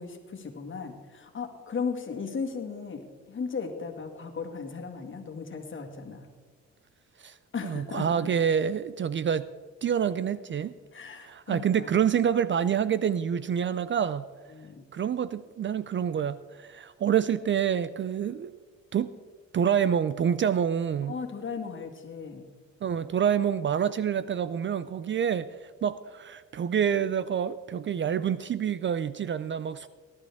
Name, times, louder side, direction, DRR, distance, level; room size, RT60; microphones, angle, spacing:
voice 1, 0.0-6.3 7.5-8.3 10.9-12.0 14.5-14.8 21.1-22.4, left 5 dB, 40° left, 4 dB, 2.0 m, -36 dB
voice 2, 7.6-9.5 9.8-10.7 11.2-14.3 14.9-18.5 18.9-19.1 19.5-21.2 22.8-29.9, right 8 dB, 40° right, 15 dB, 0.4 m, -27 dB
18.5 x 11.5 x 3.5 m, 1.5 s
cardioid pair, 90°, 30 cm